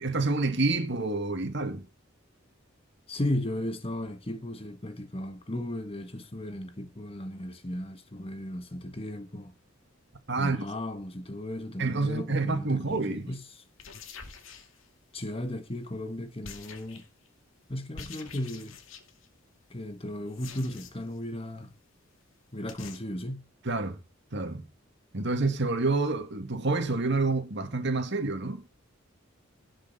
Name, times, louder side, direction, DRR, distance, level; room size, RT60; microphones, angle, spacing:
voice 1, 0.0-1.9 10.3-10.6 11.8-13.3 23.6-24.0 24.3-24.7 25.1-28.7, right 3 dB, 60° right, 2.0 m, -28 dB
voice 2, 3.1-9.5 10.4-13.6 15.1-17.0 17.7-18.8 19.7-21.7 22.5-23.5, left 1 dB, 30° left, 1.4 m, -35 dB
sound 1, 12.9-13.1 13.7-15.2 16.4-17.3 17.9-19.3 20.3-21.2 21.5-21.6 21.9-22.0 22.2-22.3 22.7-23.0, left 5 dB, 80° left, 2.2 m, -47 dB
17.5 x 6.6 x 4.1 m
head